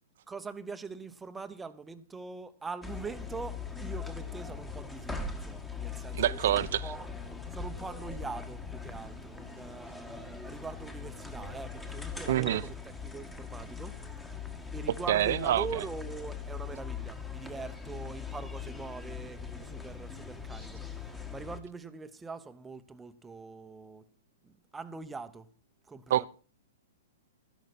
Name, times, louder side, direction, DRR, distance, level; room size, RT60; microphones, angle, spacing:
voice 1, 0.3-7.1 7.5-12.8 13.0-14.0 14.7-24.1 24.4-25.5 25.9-26.3, right 4 dB, 10° right, 0.9 m, -43 dB
sound 1, 2.8-21.6, left 5 dB, 10° left, 1.5 m, -41 dB
voice 2, 6.1-6.9 12.3-12.6 15.1-15.8 26.1-26.3, right 12 dB, 60° right, 0.7 m, -27 dB
13.0 x 11.5 x 4.2 m
hypercardioid pair, 130°, 0 cm